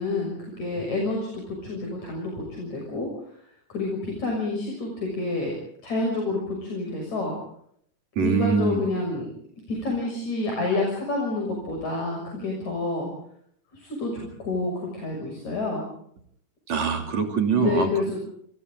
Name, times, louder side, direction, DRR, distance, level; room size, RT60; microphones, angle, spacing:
voice 1, 0.0-3.4 3.7-5.5 5.8-7.4 8.2-9.3 9.7-13.1 13.7-15.9 17.6-18.2, left 2 dB, 65° left, 0 dB, 7.8 m, -28 dB
voice 2, 8.2-8.8 16.7-17.9, right 5 dB, 65° right, 4 dB, 4.2 m, -23 dB
29.5 x 28.5 x 3.8 m, 0.67 s
omnidirectional pair, 3.5 m